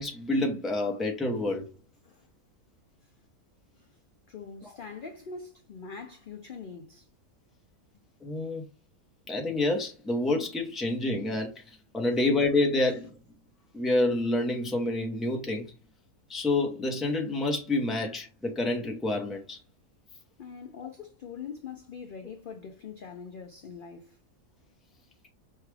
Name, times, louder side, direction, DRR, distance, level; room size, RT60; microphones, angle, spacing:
voice 1, 0.0-1.7 4.6-4.8 8.2-8.6 9.3-11.5 11.9-13.2 13.7-15.6 16.3-19.6, left 2 dB, ahead, 0.6 m, -28 dB
voice 2, 4.3-7.1 20.4-24.2, left 5 dB, 60° left, 0.5 m, -43 dB
5.6 x 2.3 x 3.2 m
omnidirectional pair, 1.5 m